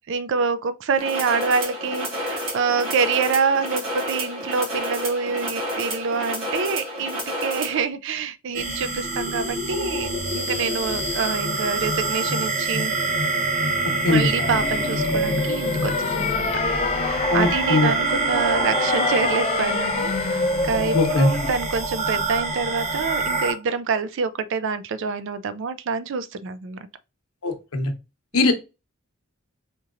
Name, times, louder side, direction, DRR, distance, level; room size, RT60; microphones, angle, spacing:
voice 1, 0.1-10.1 10.3-13.0 14.1-16.6 17.0-26.8 28.3-28.5, right 5 dB, 60° right, 0.4 m, -26 dB
sound 1, 1.0-7.8, equal, 85° right, 2.3 m, -30 dB
sound 2, 8.5-23.5, right 2 dB, 40° right, 1.1 m, -26 dB
sound 3, 14.4-21.5, left 3 dB, 30° left, 0.5 m, -26 dB
voice 2, 17.3-17.9 20.9-21.3 27.4-27.9 28.3-28.5, left 2 dB, 80° left, 0.9 m, -20 dB
4.4 x 2.8 x 2.5 m
head